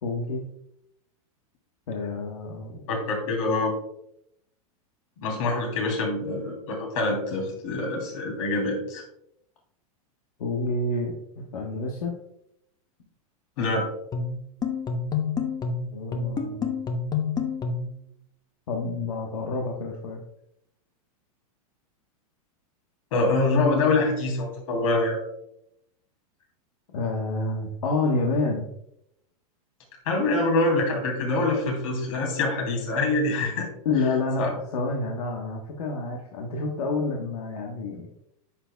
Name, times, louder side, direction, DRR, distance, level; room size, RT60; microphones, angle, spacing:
voice 1, 0.0-0.4 1.9-2.9 10.4-12.1 15.9-16.7 18.7-20.2 26.9-28.7 33.8-38.1, left 3 dB, 85° left, -1 dB, 1.3 m, -28 dB
voice 2, 2.9-3.7 5.2-9.0 13.6-13.9 23.1-25.2 30.0-33.7 34.4-34.5, left 2 dB, 65° left, 1 dB, 3.1 m, -25 dB
sound 1, 14.1-18.0, left 5 dB, 20° left, 0.8 m, -28 dB
9.9 x 6.9 x 2.3 m, 0.78 s
supercardioid pair, 135°, 19 cm